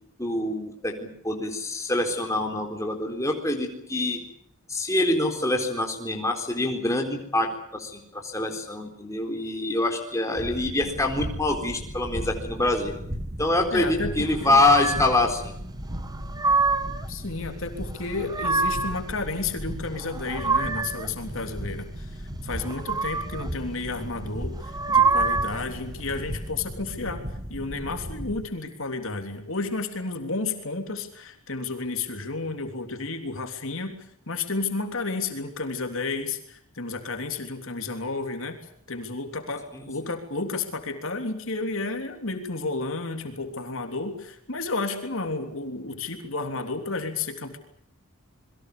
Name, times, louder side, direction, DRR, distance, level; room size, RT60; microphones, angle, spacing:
voice 1, 0.2-0.9 1.2-4.2 4.7-12.9 13.4-15.5 39.7-39.8, left 2 dB, 15° left, 2 dB, 4.1 m, -25 dB
sound 1, 10.4-28.5, equal, 30° right, 2.2 m, -36 dB
voice 2, 13.7-14.6 17.1-27.2 27.5-34.0 34.3-38.6 38.9-47.6, left 3 dB, 65° left, 5 dB, 3.4 m, -32 dB
sound 2, 14.6-15.2 16.0-17.0 18.0-19.0 19.9-21.1 22.6-23.5 24.6-25.6, right 4 dB, 15° right, 1.6 m, -25 dB
28.0 x 22.5 x 6.9 m, 0.69 s
head